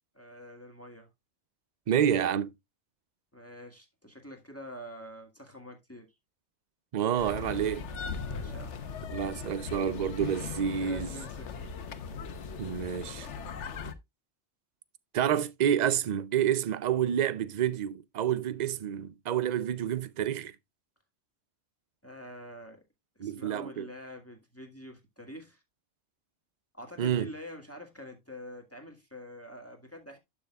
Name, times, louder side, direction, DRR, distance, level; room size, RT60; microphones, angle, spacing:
voice 1, 0.1-1.1 3.3-6.1 8.2-8.8 9.2-9.5 10.8-11.7 22.0-22.8 23.2-25.6 26.7-30.2, equal, 10° left, 1.7 m, -46 dB
voice 2, 1.9-2.5 6.9-7.9 9.1-11.1 12.6-13.3 15.1-20.5 23.2-23.9 27.0-27.3, right 9 dB, 50° right, 0.6 m, -28 dB
sound 1, 7.2-13.9, left 5 dB, 90° left, 1.2 m, -39 dB
11.5 x 6.2 x 2.3 m
omnidirectional pair, 1.2 m